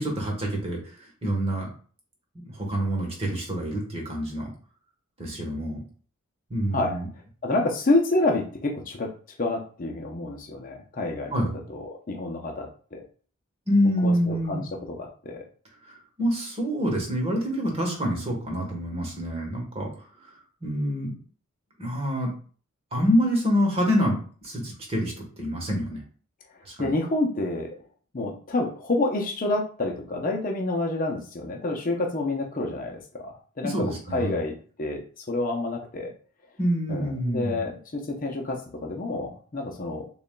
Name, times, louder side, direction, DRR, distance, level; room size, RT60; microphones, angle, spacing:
voice 1, 0.0-1.7 2.3-4.5 5.2-5.8 6.5-7.1 11.3-11.6 13.7-14.6 15.9-19.9 20.2-20.3 20.6-21.1 21.8-22.3 22.9-26.0 26.6-26.9 33.6-34.4 36.6-37.6, equal, 30° right, -1 dB, 1.2 m, -26 dB
voice 2, 6.7-7.0 7.4-9.1 9.4-11.4 11.7-13.0 14.0-14.6 14.9-15.4 26.8-27.8 28.1-36.1 36.9-40.1, left 2 dB, 40° left, 1 dB, 0.6 m, -28 dB
6.8 x 2.4 x 2.2 m, 0.43 s
head